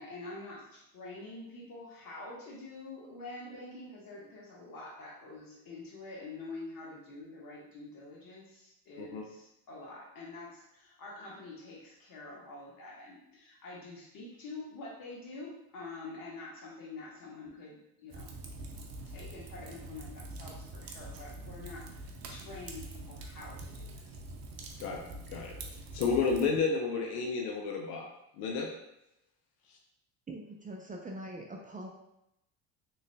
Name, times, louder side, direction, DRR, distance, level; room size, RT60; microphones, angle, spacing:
voice 1, 0.0-18.3 19.0-24.2, left 2 dB, 55° left, -4 dB, 1.4 m, -46 dB
Fire, 18.1-26.5, right 2 dB, 55° right, 0.7 m, -45 dB
voice 2, 25.9-28.1 28.4-28.7, left 5 dB, 75° left, 1 dB, 0.7 m, -31 dB
voice 3, 30.3-31.9, right 1 dB, 20° right, 0 dB, 0.5 m, -43 dB
3.6 x 3.1 x 2.2 m, 0.83 s
supercardioid pair, 70°, 41 cm